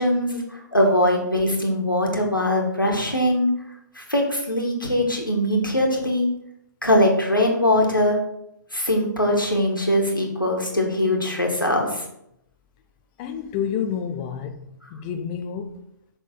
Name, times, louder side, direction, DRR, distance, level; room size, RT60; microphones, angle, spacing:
voice 1, 0.0-3.5 4.0-6.3 6.8-8.2 8.7-12.0, left 1 dB, 90° left, 1.9 m, -21 dB
voice 2, 13.2-14.6 14.9-15.8, left 8 dB, 25° left, 0.4 m, -29 dB
6.3 x 3.8 x 5.3 m
figure-of-eight pair, 130°, 11 cm